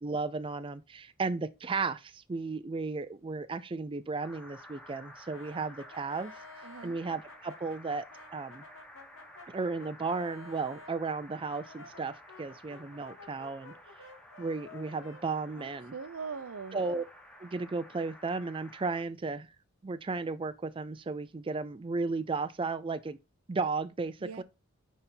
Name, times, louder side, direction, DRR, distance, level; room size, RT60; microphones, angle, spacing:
voice 1, 0.0-6.3 6.8-8.6 9.5-13.7 14.4-15.9 16.7-17.0 17.4-19.5 19.8-23.2 23.5-24.4, right 4 dB, 25° right, 0.4 m, -34 dB
sound 1, 4.2-19.0, equal, 5° left, 1.2 m, -53 dB
Brass instrument, 5.3-11.0 11.5-16.3, left 3 dB, 75° left, 2.0 m, -53 dB
voice 2, 6.6-7.0 15.6-16.8 24.2-24.4, right 5 dB, 80° right, 0.7 m, -41 dB
9.9 x 4.1 x 3.9 m
head